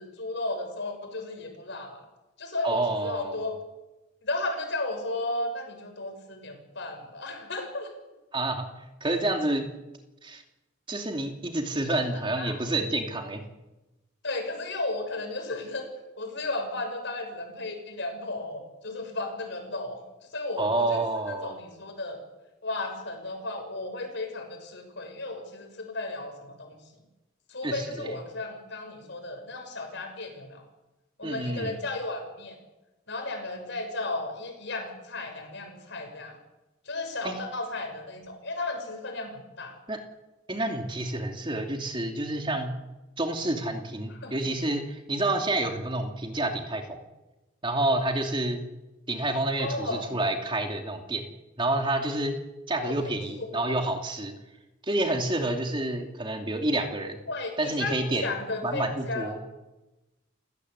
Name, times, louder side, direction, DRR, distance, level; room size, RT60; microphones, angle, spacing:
voice 1, 0.0-2.1 2.4-3.6 4.2-7.9 11.9-12.6 14.2-15.9 16.2-20.0 20.3-21.0 21.3-22.2 22.6-26.8 27.5-30.6 31.2-32.6 33.1-36.4 36.8-39.8 44.2-44.4 49.6-50.1 52.8-53.2 53.7-53.8 57.3-59.3, left 2 dB, 60° left, 5 dB, 6.7 m, -34 dB
voice 2, 2.6-3.4 8.3-8.7 9.0-9.7 10.2-10.4 10.9-13.4 20.6-21.5 27.6-28.2 31.2-31.8 37.2-37.3 39.9-40.0 40.5-42.7 43.2-47.0 47.6-48.6 49.1-51.2 51.6-52.4 52.7-54.3 54.8-57.2 57.6-58.3 58.6-59.4, right 2 dB, 25° right, 4 dB, 2.8 m, -28 dB
29.0 x 17.0 x 8.2 m, 1.0 s
head